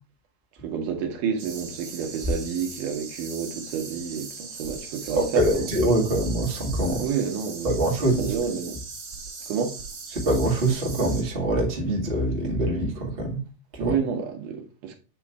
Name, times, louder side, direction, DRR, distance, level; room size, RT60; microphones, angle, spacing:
voice 1, 0.6-5.7 7.0-7.9 8.2-8.8 9.5-9.8 13.8-15.0, right 7 dB, 75° right, 2.6 m, -29 dB
sound 1, 1.4-11.2, right 4 dB, 50° right, 3.4 m, -40 dB
voice 2, 5.1-7.0 7.6-8.3 10.1-13.4 13.7-13.9, right 1 dB, 20° right, 1.7 m, -24 dB
8.3 x 3.1 x 4.5 m
omnidirectional pair, 3.8 m